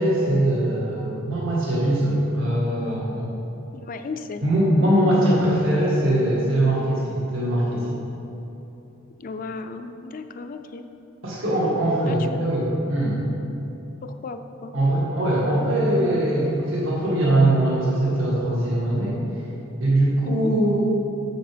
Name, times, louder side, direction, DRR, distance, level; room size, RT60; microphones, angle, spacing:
voice 1, 0.0-3.3 4.4-8.0 11.2-13.2 14.7-19.2 19.8-20.8, right 1 dB, 75° right, -6 dB, 1.9 m, -21 dB
voice 2, 3.7-4.5 9.2-10.8 12.0-12.4 14.0-14.7 20.2-20.5, left 4 dB, 40° left, 7 dB, 0.4 m, -35 dB
7.9 x 7.1 x 5.1 m, 3.0 s
head